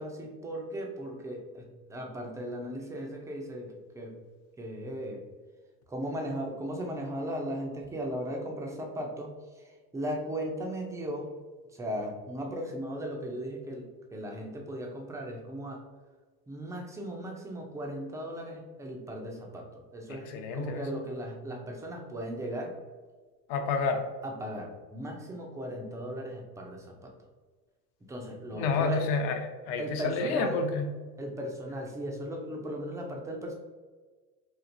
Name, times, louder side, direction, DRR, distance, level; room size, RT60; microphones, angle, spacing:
voice 1, 0.0-4.2 4.6-5.2 5.9-11.3 11.7-15.8 16.5-20.3 20.5-22.7 24.2-27.1 28.1-29.1 29.8-30.6 31.2-33.5, equal, 5° right, 1 dB, 0.4 m, -37 dB
voice 2, 20.1-20.9 23.5-24.0 28.5-30.9, left 4 dB, 50° left, 5 dB, 0.7 m, -29 dB
4.3 x 2.4 x 2.5 m, 1.4 s
hypercardioid pair, 90°, 49 cm